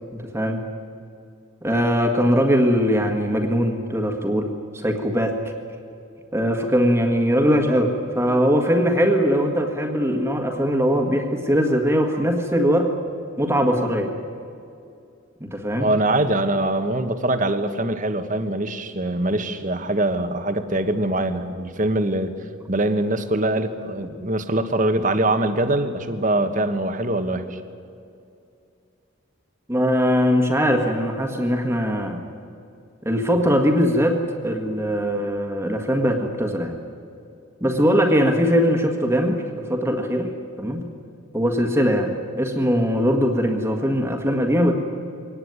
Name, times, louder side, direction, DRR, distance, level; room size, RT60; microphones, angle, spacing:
voice 1, 1.6-5.4 6.3-12.9 13.4-14.1 15.4-15.9 29.7-32.2 33.0-36.8 37.6-40.3 40.6-40.9 41.3-44.7, equal, 10° right, 3 dB, 1.7 m, -21 dB
voice 2, 15.8-22.3 22.7-27.6, right 1 dB, 40° right, 9 dB, 1.4 m, -23 dB
23.0 x 18.5 x 9.6 m, 2.6 s
head